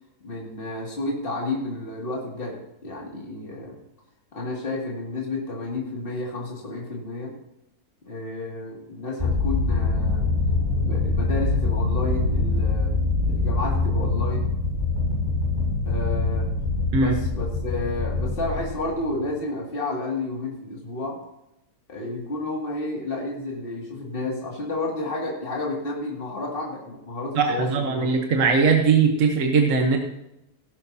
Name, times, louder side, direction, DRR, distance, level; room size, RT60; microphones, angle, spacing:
voice 1, 0.2-3.8 4.3-7.3 8.1-10.3 10.7-13.0 13.3-14.5 15.9-16.5 17.0-21.2 21.9-28.1, left 2 dB, 35° left, -2 dB, 2.6 m, -31 dB
sound 1, 9.2-19.3, left 3 dB, 25° right, 6.2 m, -24 dB
voice 2, 27.3-30.0, right 5 dB, 50° right, 3 dB, 1.5 m, -20 dB
16.5 x 12.5 x 2.8 m, 0.86 s
omnidirectional pair, 1.8 m